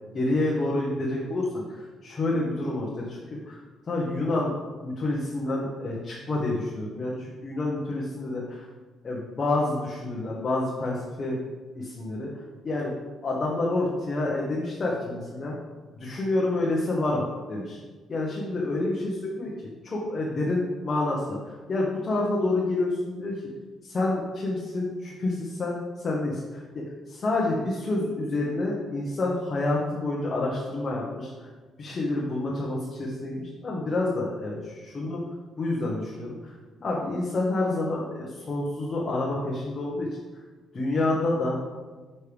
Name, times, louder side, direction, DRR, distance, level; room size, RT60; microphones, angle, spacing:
voice 1, 0.1-3.6 3.9-8.7 9.0-11.4 11.7-12.9 13.2-15.6 15.9-17.8 18.1-23.4 23.8-31.5 31.8-35.2 35.6-40.1 40.7-41.6, left 2 dB, 40° left, -4 dB, 1.2 m, -28 dB
6.5 x 5.5 x 3.4 m, 1.3 s
cardioid pair, 90°, 0 cm